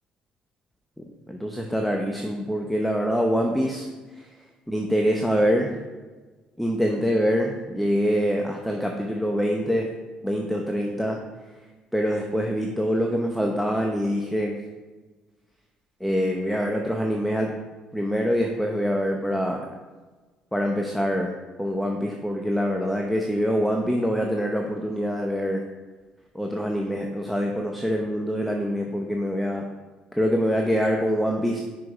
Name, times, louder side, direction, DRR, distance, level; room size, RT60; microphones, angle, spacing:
voice 1, 1.3-3.9 4.2-4.3 4.7-5.8 6.6-9.9 10.2-11.2 11.9-14.6 16.0-17.5 17.9-19.6 20.5-25.6 26.3-29.7 30.1-31.6, equal, ahead, 2 dB, 0.8 m, -25 dB
6.2 x 4.8 x 4.8 m, 1.3 s
supercardioid pair, 65°, 3 cm